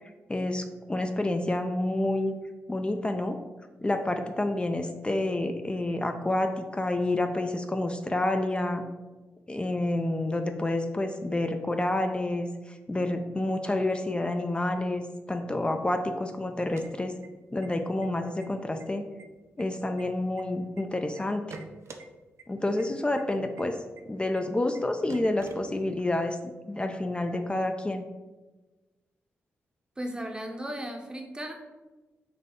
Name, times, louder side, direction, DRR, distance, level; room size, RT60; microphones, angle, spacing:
voice 1, 0.3-2.3 2.7-3.4 3.8-8.9 9.5-15.0 15.3-17.2 17.5-19.1 19.6-21.6 22.5-23.8 24.0-26.4 26.7-28.0, left 1 dB, 20° left, 6 dB, 0.3 m, -29 dB
sound 1, 16.5-17.7 18.0-18.1 18.4-18.8 19.2-20.8 21.2-22.0 22.4-22.5 22.8-22.9 23.2-23.3 23.6-23.7 24.0-24.1 24.3-24.4 24.7-24.8 25.1-26.1, right 4 dB, 60° right, 0.4 m, -46 dB
voice 2, 30.0-31.5, right 1 dB, 15° right, 3 dB, 0.7 m, -36 dB
3.9 x 2.6 x 3.7 m, 1.2 s
cardioid pair, 60°, 5 cm